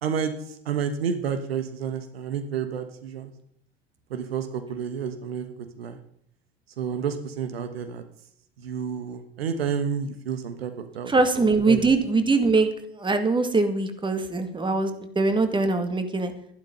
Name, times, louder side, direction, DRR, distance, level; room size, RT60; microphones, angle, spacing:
voice 1, 0.0-3.3 4.1-6.0 6.8-8.0 8.6-11.9, right 7 dB, 70° right, 9 dB, 1.4 m, -30 dB
voice 2, 11.1-12.7 13.0-16.3, right 3 dB, 15° right, 8 dB, 2.0 m, -22 dB
12.5 x 11.5 x 5.4 m, 0.70 s
figure-of-eight pair, 70°, 31 cm